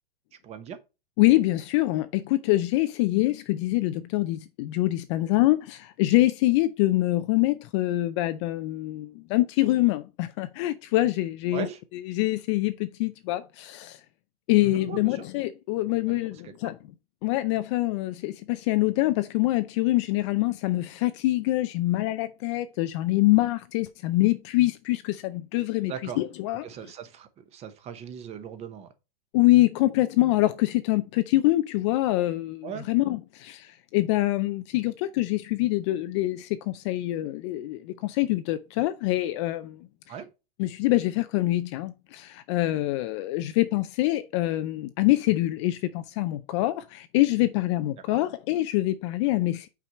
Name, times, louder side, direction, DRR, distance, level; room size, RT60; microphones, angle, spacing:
voice 1, 0.4-0.8 11.5-11.8 14.6-15.3 16.1-16.7 25.9-26.2 26.6-28.9 32.6-32.9 40.1-40.3 48.1-48.2, right 8 dB, 20° right, 0.9 m, -39 dB
voice 2, 1.2-11.7 12.0-14.0 14.5-16.8 17.2-26.7 29.3-39.8 40.6-49.7, left 17 dB, 30° left, 0.4 m, -25 dB
5.8 x 4.7 x 5.4 m
hypercardioid pair, 140°, 29 cm